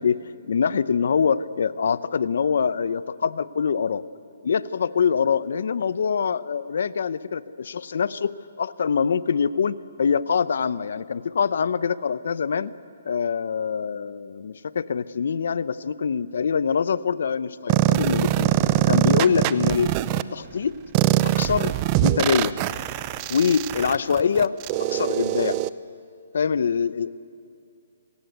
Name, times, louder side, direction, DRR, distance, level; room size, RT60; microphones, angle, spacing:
voice 1, 0.0-4.0 4.4-12.7 13.0-18.5 18.9-20.7 21.2-21.7 22.0-22.6 23.3-24.5 24.8-25.6 26.3-27.1, left 6 dB, 65° left, 17 dB, 0.7 m, -24 dB
sound 1, 17.7-20.2 20.9-25.7, right 15 dB, 25° right, 0.6 m, -22 dB
28.0 x 18.5 x 8.2 m, 2.4 s
hypercardioid pair, 160°, 0 cm